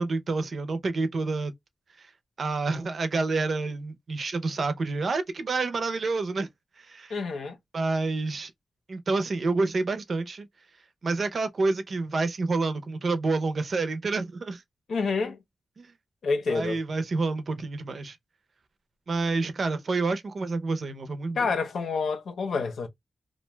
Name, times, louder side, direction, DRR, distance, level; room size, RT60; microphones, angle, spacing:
voice 1, 0.0-1.5 2.0-2.1 2.4-6.5 6.8-7.2 7.7-8.5 8.9-10.5 11.0-14.6 15.8-15.9 16.5-18.2 19.1-21.5, right 3 dB, 55° right, 0.5 m, -28 dB
voice 2, 7.1-7.6 14.9-15.4 16.2-16.8 21.4-22.9, left 4 dB, 85° left, 0.7 m, -28 dB
2.4 x 2.2 x 3.1 m
wide cardioid pair, 105°, 0 cm